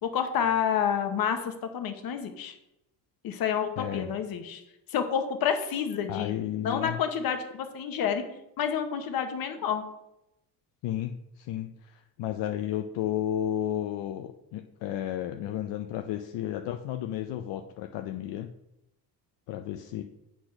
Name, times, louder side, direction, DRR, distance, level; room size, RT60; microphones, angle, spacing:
voice 1, 0.0-2.6 3.2-4.6 4.9-6.3 6.6-8.2 8.6-9.8, left 8 dB, 55° left, 7 dB, 1.1 m, -29 dB
voice 2, 3.8-4.1 6.1-7.0 10.8-18.5 19.5-20.0, left 11 dB, 70° left, 6 dB, 0.6 m, -33 dB
7.9 x 4.4 x 5.8 m, 0.87 s
cardioid pair, 165°, 44 cm